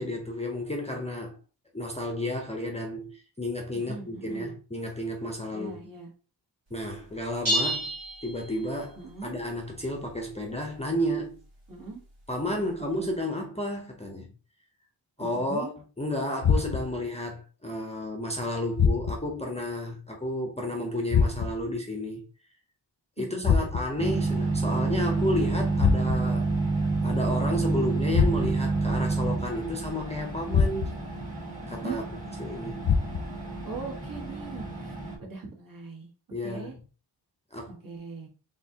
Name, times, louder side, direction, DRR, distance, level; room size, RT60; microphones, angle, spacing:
voice 1, 0.0-1.3 1.7-5.7 6.7-7.9 8.2-11.4 12.3-14.3 15.2-15.7 16.0-22.2 23.2-26.5 27.0-31.0 31.7-32.0 32.4-32.9 36.3-36.8 37.5-37.8, left 1 dB, 15° left, 0.6 m, -32 dB
voice 2, 3.7-4.5 5.5-6.1 9.0-9.3 11.7-12.0 12.5-13.1 15.2-15.7 23.2-23.7 31.8-32.0 33.6-36.1 36.4-36.7 37.7-38.3, right 4 dB, 45° right, 1.5 m, -40 dB
sound 1, 7.5-9.0, right 1 dB, 75° right, 1.7 m, -29 dB
sound 2, 16.4-17.1 18.8-19.4 21.1-21.7 23.4-24.1 25.8-26.4 28.1-28.8 30.5-31.1 32.8-33.5, left 6 dB, 60° left, 0.6 m, -25 dB
sound 3, 24.0-35.2, right 3 dB, 15° right, 1.6 m, -29 dB
4.5 x 3.7 x 2.8 m
wide cardioid pair, 140°, 45 cm